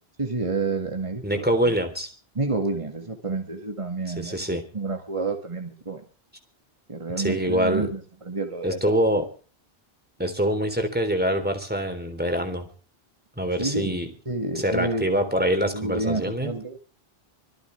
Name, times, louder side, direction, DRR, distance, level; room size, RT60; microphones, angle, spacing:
voice 1, 0.2-1.7 2.4-6.0 6.9-9.0 13.6-14.0 14.3-15.1 15.7-16.8, right 3 dB, 30° right, 4 dB, 2.2 m, -29 dB
voice 2, 1.2-2.1 4.2-4.6 7.2-7.9 8.6-9.3 10.2-12.7 13.4-14.1 14.6-16.5, equal, 10° right, 6 dB, 3.6 m, -25 dB
25.5 x 14.5 x 3.4 m, 0.38 s
omnidirectional pair, 1.0 m